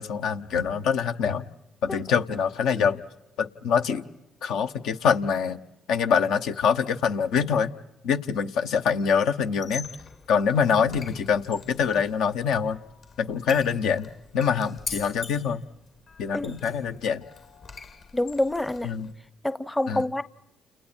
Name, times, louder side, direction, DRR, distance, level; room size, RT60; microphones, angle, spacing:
voice 1, 0.0-1.4 1.8-3.0 3.4-4.1 4.4-5.6 5.9-7.7 8.0-9.9 10.3-12.8 13.2-14.1 14.3-15.6 16.2-17.2 18.8-19.1 19.9-20.0, left 6 dB, 75° left, 9 dB, 0.9 m, -24 dB
Squeak, 9.5-19.1, left 5 dB, 60° left, 2.5 m, -43 dB
voice 2, 18.1-18.9 19.4-20.2, left 1 dB, 10° left, 17 dB, 0.7 m, -27 dB
29.5 x 29.0 x 4.4 m, 0.89 s
supercardioid pair, 60°, 0 cm